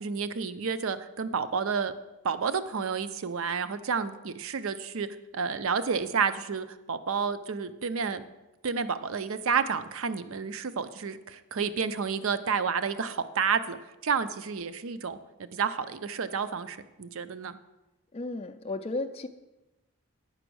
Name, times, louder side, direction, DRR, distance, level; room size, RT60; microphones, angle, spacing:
voice 1, 0.0-1.9 2.2-5.1 5.3-8.2 8.6-13.8 14.0-15.2 15.5-17.6, right 6 dB, 60° right, 13 dB, 0.5 m, -30 dB
voice 2, 18.1-19.3, left 2 dB, 25° left, 6 dB, 0.3 m, -34 dB
8.9 x 6.0 x 6.2 m, 1.0 s
head